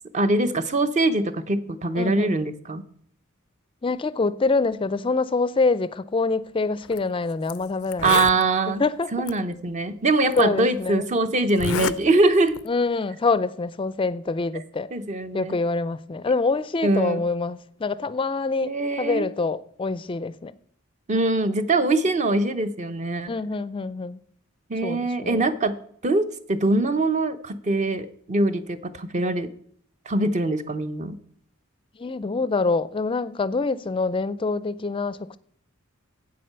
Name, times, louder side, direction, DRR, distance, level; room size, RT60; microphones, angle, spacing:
voice 1, 0.1-2.8 8.0-8.8 9.1-12.6 14.9-15.6 16.8-17.2 18.6-19.2 21.1-23.3 24.7-25.8 26.0-29.5 30.1-31.2, right 2 dB, 35° right, 0.7 m, -23 dB
voice 2, 1.9-2.4 3.8-8.2 8.8-9.1 10.3-11.1 12.7-14.9 15.3-20.6 23.3-24.2 24.8-25.5 32.0-35.4, left 3 dB, 25° left, 0.4 m, -25 dB
Zipper (clothing), 6.8-7.0 7.5-7.6 7.8-8.4 9.3-9.4 10.3-10.4 11.5-12.0 12.3-12.7, left 8 dB, 85° left, 0.4 m, -28 dB
8.2 x 7.6 x 6.7 m
head